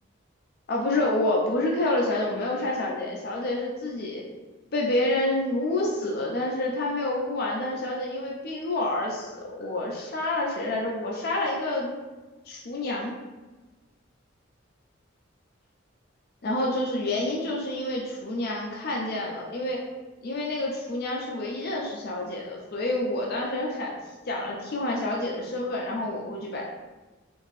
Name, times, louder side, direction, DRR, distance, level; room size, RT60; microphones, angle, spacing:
voice 1, 0.7-4.2 4.7-12.0 12.5-13.1 16.4-19.8 20.2-23.9 24.3-26.7, left 2 dB, 50° left, -2 dB, 0.4 m, -28 dB
2.8 x 2.5 x 3.0 m, 1.2 s
head